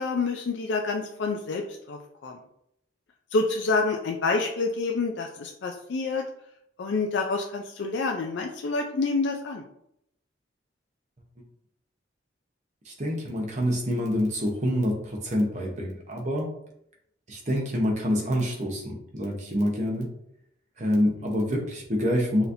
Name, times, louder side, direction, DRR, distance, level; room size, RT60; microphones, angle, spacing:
voice 1, 0.0-2.3 3.3-6.3 6.8-9.6, left 3 dB, 70° left, 2 dB, 0.4 m, -28 dB
voice 2, 12.9-16.5 17.3-20.1 20.8-22.5, equal, 40° right, 0 dB, 0.9 m, -26 dB
5.6 x 2.8 x 2.6 m, 0.74 s
head